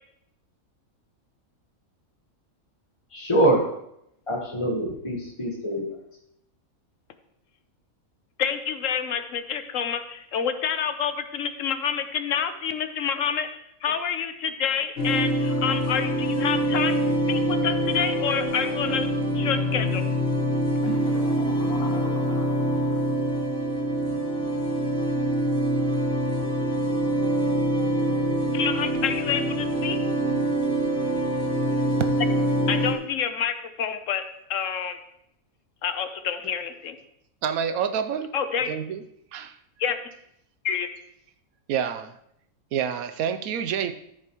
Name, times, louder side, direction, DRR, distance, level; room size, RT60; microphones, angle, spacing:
voice 1, 3.1-3.6 4.3-5.9, right 1 dB, 25° left, -2 dB, 1.2 m, -24 dB
voice 2, 8.4-13.5 13.8-17.0 17.3-19.1 19.3-20.0 28.5-30.0 32.7-34.2 34.5-35.0 35.8-37.0 38.3-38.8 39.8-40.0 40.6-40.9, left 7 dB, 65° left, 9 dB, 1.1 m, -28 dB
sound 1, 15.0-32.9, right 1 dB, 45° left, 1.4 m, -25 dB
sound 2, 20.8-23.2, left 2 dB, 85° left, 1.6 m, -37 dB
voice 3, 37.4-38.3 38.7-39.0 39.3-39.5 41.7-42.1 42.7-43.9, right 8 dB, 80° right, 9 dB, 1.0 m, -27 dB
13.0 x 7.1 x 3.0 m, 0.75 s
omnidirectional pair, 1.5 m